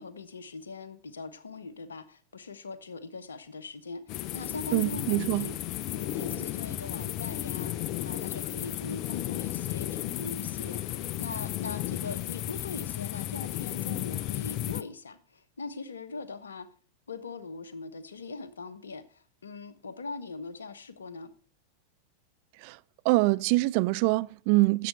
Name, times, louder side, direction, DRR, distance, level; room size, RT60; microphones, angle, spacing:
voice 1, 0.0-5.5 5.9-7.7 8.0-16.7 17.1-21.3, left 4 dB, 70° left, 0.9 m, -41 dB
sound 1, 4.1-14.8, left 13 dB, 40° left, 0.5 m, -34 dB
voice 2, 4.7-5.5 22.6-22.8 23.0-24.9, right 22 dB, 45° right, 0.4 m, -24 dB
11.5 x 7.6 x 4.2 m
figure-of-eight pair, 90°, 0 cm